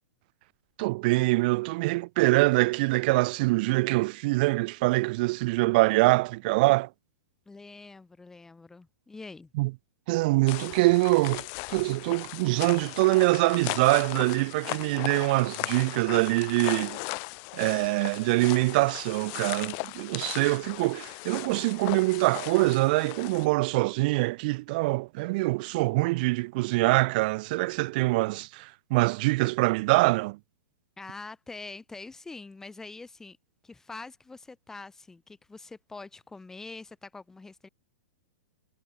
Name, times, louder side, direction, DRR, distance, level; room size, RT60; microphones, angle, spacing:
voice 1, 0.8-6.9 9.6-9.7 10.1-17.0 17.5-30.4, right 23 dB, 35° right, 1.9 m, -24 dB
voice 2, 7.5-9.5 31.0-33.4 33.6-37.7, left 3 dB, 5° left, 7.8 m, -44 dB
sound 1, 10.5-23.5, left 40 dB or more, 30° left, 4.4 m, -37 dB
hypercardioid pair, 165°, 8 cm